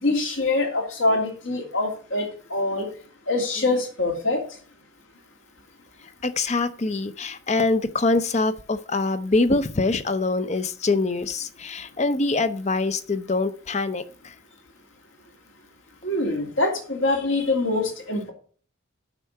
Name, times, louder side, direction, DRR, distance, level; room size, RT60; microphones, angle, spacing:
voice 1, 0.0-2.9 3.3-4.4 16.0-18.3, left 2 dB, 70° left, 2 dB, 2.7 m, -24 dB
voice 2, 6.2-14.3, left 3 dB, 35° left, 13 dB, 0.6 m, -24 dB
8.2 x 5.6 x 7.7 m, 0.43 s
head